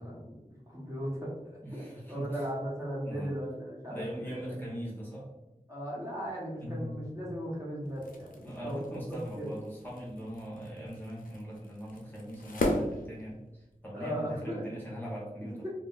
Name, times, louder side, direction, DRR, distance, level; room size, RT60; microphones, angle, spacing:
voice 1, 0.0-4.6 5.7-9.6 13.9-14.6 15.4-15.7, equal, 25° right, -5 dB, 1.1 m, -37 dB
voice 2, 1.6-2.4 3.0-3.3 3.9-5.3 6.6-7.0 8.4-15.7, equal, 15° left, -5 dB, 0.9 m, -40 dB
sound 1, 7.8-13.8, left 1 dB, 85° left, 0.5 m, -37 dB
2.3 x 2.2 x 3.8 m, 0.98 s
wide cardioid pair, 40°, 14 cm